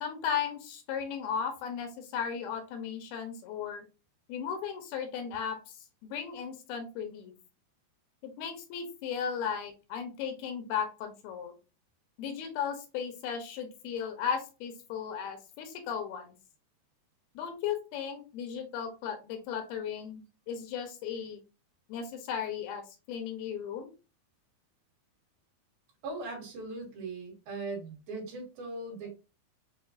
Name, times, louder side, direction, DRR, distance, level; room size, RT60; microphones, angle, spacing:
voice 1, 0.0-3.8 4.3-5.7 6.0-7.3 8.2-11.5 12.2-16.4 17.4-20.2 20.5-21.4 21.9-22.8 23.1-23.9, left 7 dB, 85° left, 6 dB, 2.8 m, -36 dB
voice 2, 26.0-29.2, right 3 dB, 70° right, -1 dB, 3.3 m, -39 dB
6.9 x 2.3 x 2.5 m, 0.30 s
omnidirectional pair, 4.4 m